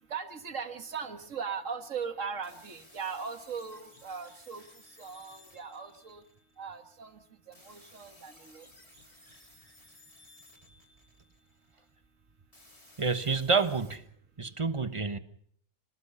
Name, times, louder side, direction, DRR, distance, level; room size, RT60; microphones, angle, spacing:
voice 1, 0.1-4.6 5.0-6.2 6.6-7.2 7.5-8.7, right 6 dB, 60° right, 2.0 m, -39 dB
sound 1, 2.4-6.6 7.5-11.7 12.5-14.0, left 1 dB, 25° left, 3.6 m, -57 dB
voice 2, 13.0-14.0 14.4-15.2, right 4 dB, 25° right, 1.0 m, -28 dB
27.0 x 19.5 x 5.6 m
omnidirectional pair, 1.5 m